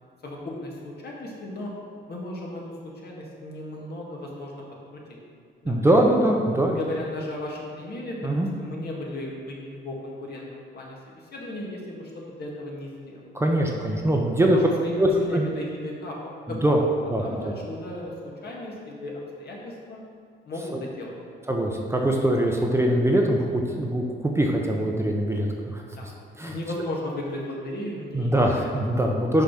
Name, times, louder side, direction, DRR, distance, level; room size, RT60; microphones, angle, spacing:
voice 1, 0.2-1.7 2.1-4.6 4.9-5.2 5.6-5.8 6.8-13.3 14.4-20.0 20.5-21.1 26.0-26.1 26.4-28.6, left 1 dB, 55° left, -2 dB, 1.8 m, -35 dB
voice 2, 5.6-6.8 8.2-8.5 13.3-14.6 15.0-15.4 16.5-16.8 17.1-17.5 20.7-20.8 21.5-25.8 26.4-26.5 28.1-29.4, right 1 dB, 15° right, 0 dB, 0.8 m, -22 dB
5.8 x 5.0 x 5.9 m, 2.2 s
cardioid pair, 90°, 20 cm